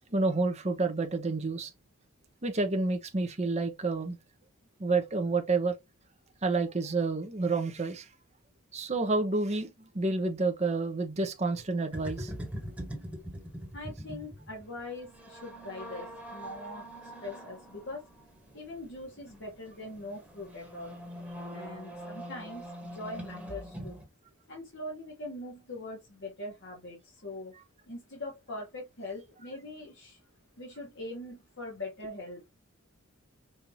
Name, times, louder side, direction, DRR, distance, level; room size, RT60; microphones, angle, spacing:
voice 1, 0.1-1.7 2.4-4.2 4.8-5.7 6.4-8.1 8.7-9.7 9.9-12.3, right 3 dB, 30° right, 0.8 m, -29 dB
sound 1, 11.9-24.0, equal, 5° right, 1.5 m, -43 dB
voice 2, 13.7-18.1 18.5-21.0 21.5-24.0 24.5-27.5 27.9-30.2 30.6-32.5, left 2 dB, 55° left, 1.4 m, -42 dB
5.5 x 2.7 x 2.9 m
head